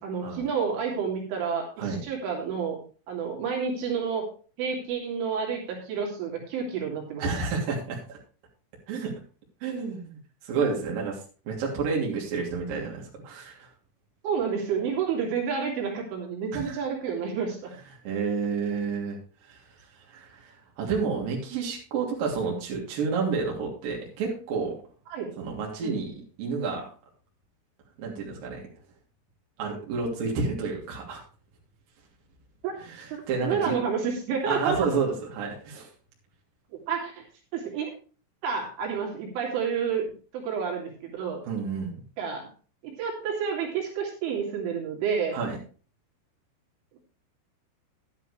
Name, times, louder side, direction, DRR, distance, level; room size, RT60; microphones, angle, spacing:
voice 1, 0.0-2.8 3.1-4.3 4.6-7.5 14.2-17.7 25.1-25.3 25.8-26.0 32.6-32.7 33.1-34.8 36.9-37.2 37.5-37.9 38.4-41.4 42.2-42.5 42.8-45.4, right 6 dB, 70° right, -1 dB, 5.0 m, -30 dB
voice 2, 7.2-8.2 8.9-9.1 9.6-10.2 10.4-11.2 11.5-13.7 16.5-16.8 18.0-19.2 19.5-19.6 20.1-24.8 25.4-26.9 28.0-28.6 29.6-31.2 32.8-33.8 34.5-35.9 41.4-42.0 45.3-45.6, right 5 dB, 50° right, -2 dB, 4.2 m, -30 dB
11.5 x 11.0 x 3.3 m, 0.37 s
omnidirectional pair, 5.9 m